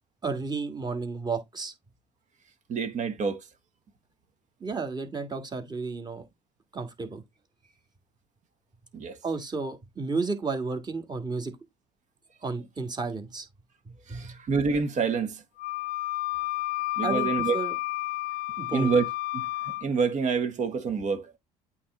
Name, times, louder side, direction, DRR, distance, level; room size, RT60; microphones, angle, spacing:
voice 1, 0.2-1.7 4.6-6.2 6.7-7.2 9.2-11.5 12.4-13.5 13.9-14.4 17.0-17.8 18.6-18.9, right 4 dB, 25° right, 1.8 m, -32 dB
voice 2, 2.7-3.5 8.9-9.2 14.1-15.4 17.0-17.6 18.7-19.0 19.3-21.3, right 5 dB, 50° right, 1.2 m, -27 dB
Wind instrument woodwind instrument, 15.6-19.9, left 20 dB, 65° left, 0.4 m, -31 dB
8.5 x 3.2 x 3.7 m
supercardioid pair, 75°, 16 cm